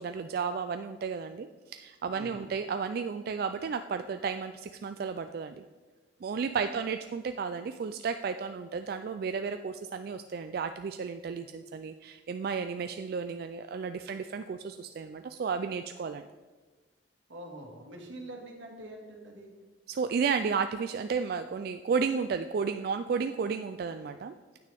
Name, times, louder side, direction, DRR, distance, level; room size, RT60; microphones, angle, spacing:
voice 1, 0.0-5.6 6.2-16.2 19.9-24.3, right 5 dB, 55° right, 8 dB, 0.3 m, -33 dB
voice 2, 2.1-2.5 6.7-6.8 17.3-19.5, right 1 dB, 85° right, 1 dB, 1.8 m, -45 dB
9.4 x 9.1 x 3.4 m, 1.3 s
head